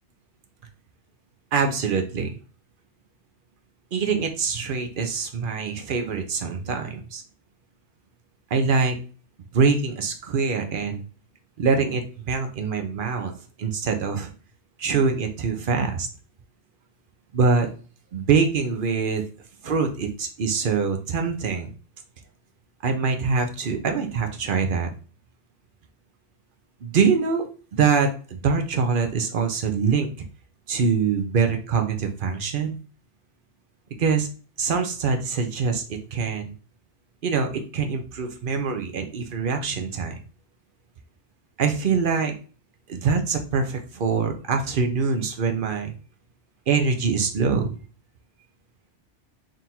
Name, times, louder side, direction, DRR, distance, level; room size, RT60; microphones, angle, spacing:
voice 1, 1.5-2.3 3.9-7.2 8.5-9.0 9.5-11.0 11.6-13.3 13.6-14.3 14.8-16.1 17.3-17.7 18.1-19.3 19.6-21.7 22.8-24.9 26.8-30.3 30.7-32.8 34.0-34.3 34.6-35.8 36.1-36.5 37.2-40.2 41.6-42.4 42.9-46.0 46.7-47.7, right 5 dB, 55° right, 5 dB, 0.7 m, -24 dB
3.8 x 2.5 x 4.2 m, 0.38 s
omnidirectional pair, 1.2 m